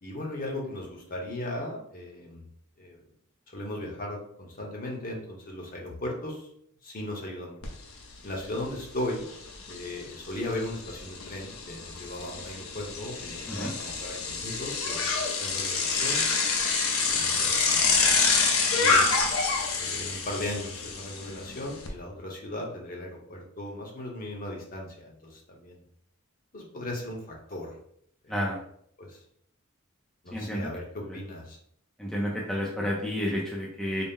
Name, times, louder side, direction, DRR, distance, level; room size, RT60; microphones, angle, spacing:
voice 1, 0.0-2.4 2.8-3.0 3.5-6.5 6.8-7.6 8.2-9.2 9.7-16.3 17.0-18.3 18.8-19.1 19.8-25.8 26.5-27.8 28.2-28.6 29.0-29.2 30.2-31.6, left 1 dB, 40° left, -1 dB, 0.9 m, -37 dB
Bicycle, 7.6-7.7 8.1-21.9, left 4 dB, 75° left, 0.7 m, -27 dB
voice 2, 30.3-30.7 32.0-34.0, equal, 5° left, -3 dB, 0.5 m, -30 dB
4.1 x 2.1 x 3.6 m, 0.66 s
head